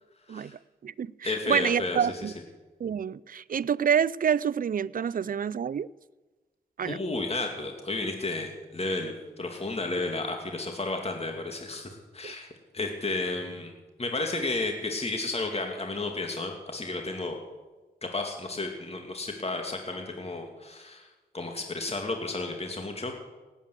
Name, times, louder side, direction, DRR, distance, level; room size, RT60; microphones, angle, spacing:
voice 1, 0.3-2.3 2.8-5.9 6.8-7.0 12.2-12.3, right 8 dB, 55° right, 0.5 m, -28 dB
voice 2, 1.2-2.3 6.8-12.5 12.7-13.7 14.0-17.4 18.0-21.1 21.3-23.1, left 2 dB, 35° left, 2.6 m, -32 dB
18.0 x 9.2 x 8.2 m
supercardioid pair, 45°, 17 cm